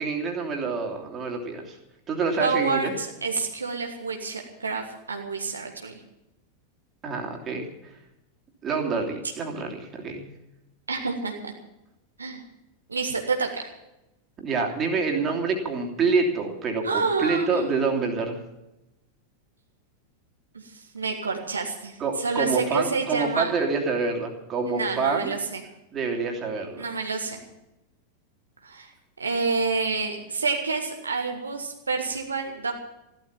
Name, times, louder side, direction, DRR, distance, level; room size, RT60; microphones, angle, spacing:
voice 1, 0.0-1.8 2.1-2.9 7.0-7.9 8.6-10.3 14.4-18.4 22.0-25.3 25.9-26.8, right 4 dB, 25° right, 1 dB, 3.1 m, -27 dB
voice 2, 2.4-6.0 10.9-11.5 12.2-12.4 12.9-13.7 16.8-17.8 20.5-23.5 24.8-25.6 26.8-27.4 28.6-28.9 29.2-32.7, right 4 dB, 75° right, 2 dB, 1.6 m, -28 dB
15.0 x 12.5 x 7.2 m, 0.92 s
figure-of-eight pair, 90°, 0 cm